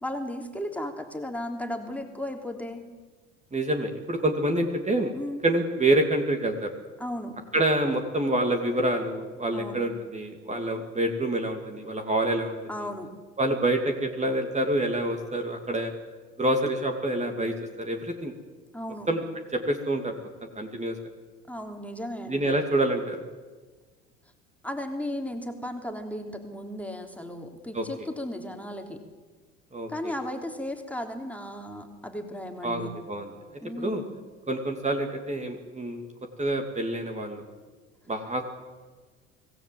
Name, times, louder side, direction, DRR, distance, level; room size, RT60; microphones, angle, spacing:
voice 1, 0.0-2.8 5.1-5.4 7.0-7.4 9.5-9.8 12.7-13.1 16.5-16.6 18.7-19.1 21.5-22.6 24.6-29.0 29.9-32.9 33.6-34.2, left 1 dB, 5° left, 3 dB, 3.2 m, -35 dB
voice 2, 3.5-5.1 5.4-6.7 7.5-12.9 13.4-15.9 16.4-18.3 19.1-19.2 19.5-20.1 20.6-21.0 22.3-23.2 27.7-27.8 29.7-30.1 32.6-33.3 33.8-34.0 34.5-36.0 36.4-37.4 38.1-38.4, right 1 dB, 20° right, 4 dB, 2.7 m, -27 dB
25.0 x 17.0 x 7.8 m, 1.4 s
hypercardioid pair, 70°, 37 cm